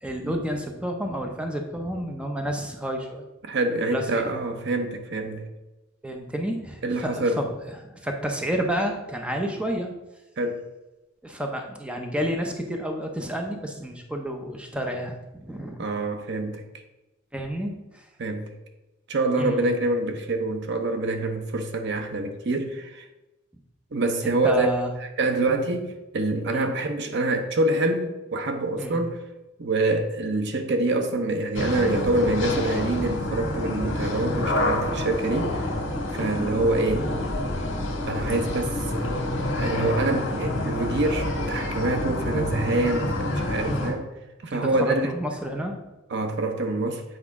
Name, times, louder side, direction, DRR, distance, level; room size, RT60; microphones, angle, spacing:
voice 1, 0.0-3.2 3.9-4.3 6.0-7.5 7.8-9.9 11.2-15.8 17.3-18.1 19.4-19.7 24.2-24.9 26.5-26.7 28.8-29.0 44.5-45.8, equal, 5° right, 0.6 m, -30 dB
voice 2, 3.4-5.5 6.8-7.4 10.4-10.6 15.8-16.6 18.2-18.5 19.1-23.1 23.9-24.7 25.2-29.2 29.6-35.7 36.1-37.1 38.1-39.3 39.5-44.1 44.4-45.1 46.1-47.0, right 2 dB, 60° right, 0.8 m, -26 dB
sound 1, 31.6-43.9, left 1 dB, 65° left, 1.7 m, -28 dB
7.9 x 4.9 x 3.6 m
head